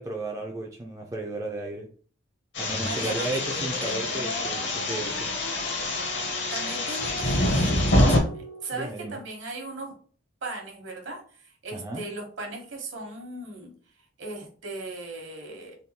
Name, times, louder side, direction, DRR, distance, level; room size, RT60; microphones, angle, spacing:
voice 1, 0.0-1.9 2.6-5.3 8.7-9.2 11.7-12.1, right 2 dB, 15° right, 0 dB, 0.3 m, -34 dB
sound 1, 2.5-8.2, left 1 dB, 60° left, 0.8 m, -26 dB
sound 2, 2.7-9.2, equal, 85° left, 1.4 m, -39 dB
voice 2, 2.8-3.4 3.8-4.0 6.5-9.9 10.4-13.7 14.2-15.8, right 2 dB, 65° right, 1 dB, 1.0 m, -37 dB
3.5 x 2.2 x 2.8 m, 0.43 s
head